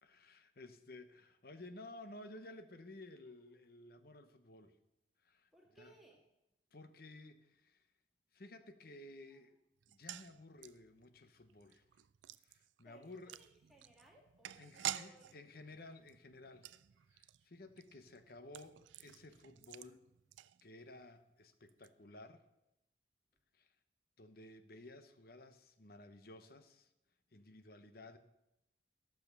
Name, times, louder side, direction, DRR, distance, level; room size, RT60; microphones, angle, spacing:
voice 1, 0.0-4.8 5.2-5.9 6.7-7.9 8.3-9.6 9.9-11.8 12.4-13.4 14.6-16.7 17.1-20.0 20.6-22.4 23.5-23.7 24.2-26.9 27.3-28.2, left 2 dB, 50° left, 10 dB, 0.9 m, -55 dB
voice 2, 5.5-6.2 9.3-9.4 12.8-15.3, right 2 dB, ahead, -3 dB, 2.1 m, -64 dB
sound 1, 9.8-21.0 21.3-21.4 21.7-21.9, right 12 dB, 75° right, 0.4 m, -49 dB
14.5 x 6.6 x 6.8 m, 0.89 s
head